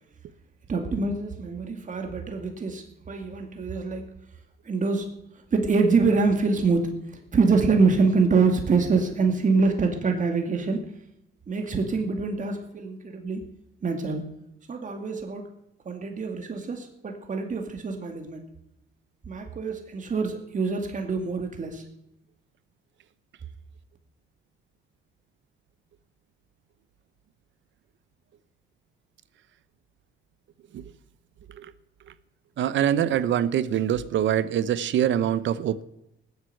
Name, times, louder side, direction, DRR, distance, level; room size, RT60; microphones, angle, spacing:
voice 1, 0.7-4.2 4.6-5.1 5.5-6.9 7.3-10.8 11.5-13.5 13.8-14.2 14.7-15.5 15.9-18.4 19.3-21.8, right 4 dB, 40° right, 4 dB, 2.2 m, -25 dB
voice 2, 32.6-35.8, right 10 dB, 70° right, 16 dB, 0.9 m, -24 dB
19.0 x 8.2 x 7.8 m, 0.84 s
cardioid pair, 90°, 20 cm